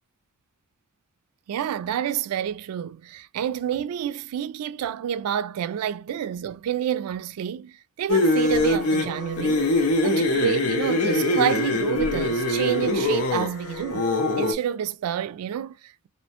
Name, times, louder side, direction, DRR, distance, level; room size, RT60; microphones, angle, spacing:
voice 1, 1.5-14.1 14.4-16.1, right 9 dB, 90° right, 0.3 m, -28 dB
sound 1, 8.1-14.5, left 2 dB, 90° left, 0.7 m, -23 dB
2.8 x 2.1 x 2.8 m
head